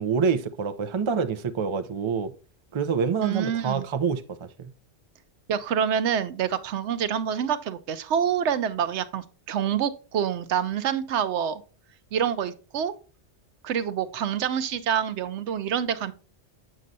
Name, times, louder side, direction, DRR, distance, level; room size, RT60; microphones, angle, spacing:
voice 1, 0.0-2.3 2.7-4.5, right 6 dB, 35° right, 0.5 m, -26 dB
voice 2, 3.2-3.9 5.5-11.6 12.1-12.9 13.6-16.1, right 8 dB, 80° right, 0.9 m, -27 dB
7.6 x 6.3 x 2.7 m
omnidirectional pair, 1.2 m